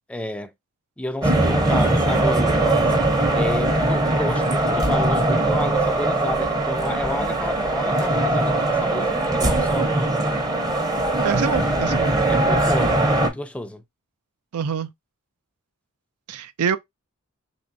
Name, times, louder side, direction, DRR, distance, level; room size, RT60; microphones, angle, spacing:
voice 1, 0.1-0.5 1.0-2.9 3.3-9.9 12.3-13.8, left 1 dB, 5° left, 0.3 m, -31 dB
sound 1, 1.2-13.3, right 2 dB, 15° right, 0.7 m, -21 dB
voice 2, 11.2-12.1 14.5-14.9 16.3-16.8, right 6 dB, 80° right, 0.4 m, -25 dB
3.6 x 3.1 x 2.6 m
head